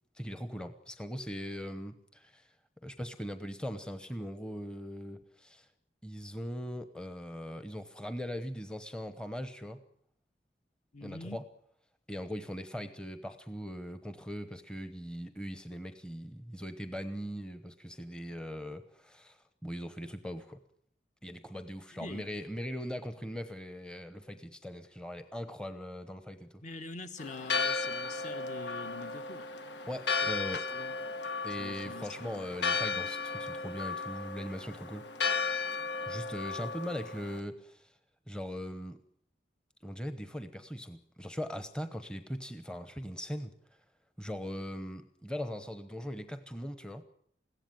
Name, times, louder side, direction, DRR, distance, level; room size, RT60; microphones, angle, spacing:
voice 1, 0.1-2.5 2.8-5.7 6.0-9.8 11.0-11.4 12.1-20.6 21.2-26.6 29.9-30.6 31.4-35.1 36.1-37.9 38.3-39.0 39.8-43.5 44.2-47.0, equal, 5° left, 10 dB, 1.0 m, -40 dB
voice 2, 10.9-11.4 22.0-22.3 26.6-29.5 30.7-31.0 31.6-32.5, left 3 dB, 45° left, 8 dB, 1.5 m, -45 dB
Church bell, 27.2-37.4, left 4 dB, 75° left, 1.5 m, -35 dB
21.5 x 16.5 x 9.2 m, 0.68 s
head